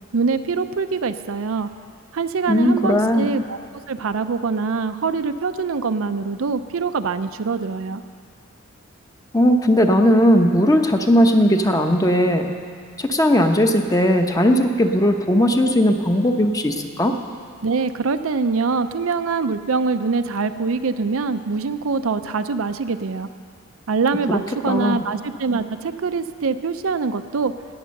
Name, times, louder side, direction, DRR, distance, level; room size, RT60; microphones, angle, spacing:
voice 1, 0.1-1.7 2.1-3.6 3.9-8.0 17.6-23.3 23.9-27.5, right 4 dB, 75° right, 10 dB, 0.5 m, -24 dB
voice 2, 2.5-3.3 9.3-12.5 13.0-17.1 24.3-24.4 24.7-25.0, equal, 15° left, 5 dB, 0.8 m, -17 dB
18.5 x 7.8 x 6.5 m, 2.2 s
head